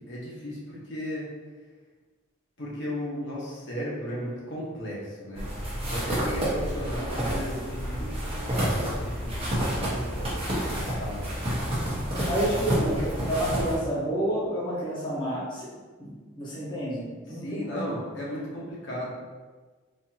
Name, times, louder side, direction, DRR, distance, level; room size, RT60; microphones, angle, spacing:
voice 1, 0.1-1.3 2.6-5.5 5.9-11.4 12.3-12.9 17.3-19.1, equal, 60° left, -6 dB, 1.0 m, -35 dB
sound 1, 5.3-13.8, equal, 25° right, 1.0 m, -29 dB
voice 2, 12.2-15.7 16.0-17.9, right 1 dB, 20° left, -8 dB, 0.9 m, -29 dB
4.2 x 2.7 x 2.8 m, 1.4 s
head